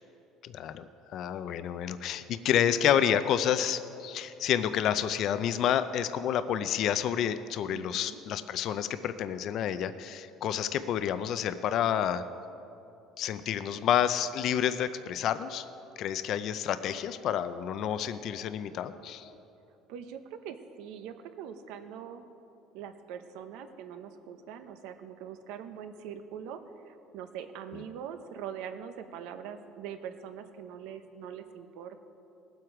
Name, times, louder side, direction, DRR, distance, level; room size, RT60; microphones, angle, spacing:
voice 1, 0.4-12.2 13.2-15.6 16.0-19.3, left 9 dB, 50° left, 12 dB, 0.4 m, -29 dB
voice 2, 7.7-8.2 19.9-22.3 22.7-32.0, right 8 dB, 80° right, 8 dB, 0.9 m, -43 dB
19.0 x 7.8 x 4.8 m, 2.8 s
cardioid pair, 145°, 0 cm